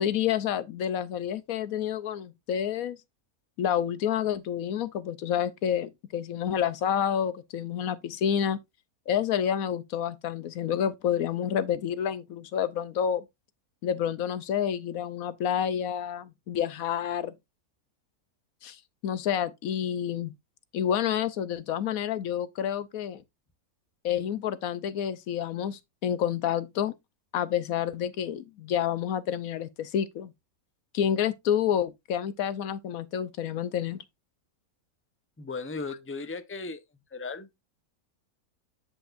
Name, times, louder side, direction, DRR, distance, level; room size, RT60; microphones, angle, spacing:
voice 1, 0.0-3.0 3.6-8.6 9.1-13.3 13.8-17.3 18.6-20.3 20.7-23.2 24.0-27.0 27.3-30.3 30.9-34.0, left 9 dB, 70° left, 1.0 m, -29 dB
voice 2, 35.4-36.8 37.1-37.5, left 3 dB, 20° left, 0.4 m, -36 dB
8.0 x 7.9 x 2.5 m
omnidirectional pair, 1.6 m